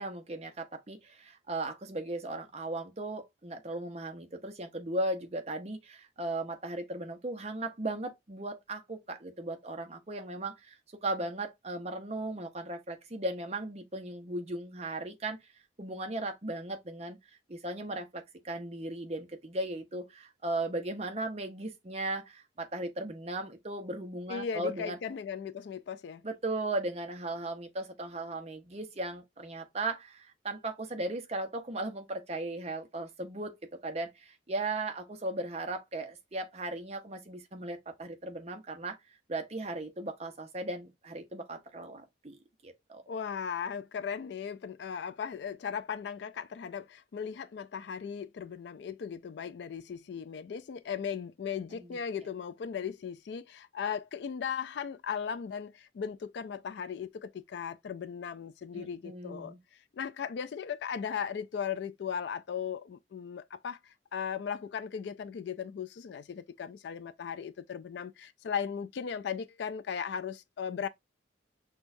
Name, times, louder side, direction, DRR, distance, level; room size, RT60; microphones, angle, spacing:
voice 1, 0.0-10.8 11.0-15.4 15.8-17.2 17.5-25.0 26.2-33.6 33.8-39.0 39.3-43.0 51.7-52.0 58.7-59.6, right 2 dB, 35° right, 0.7 m, -37 dB
voice 2, 24.3-26.2 43.1-59.5 59.9-70.9, left 7 dB, 60° left, 0.3 m, -37 dB
6.0 x 2.3 x 2.6 m
head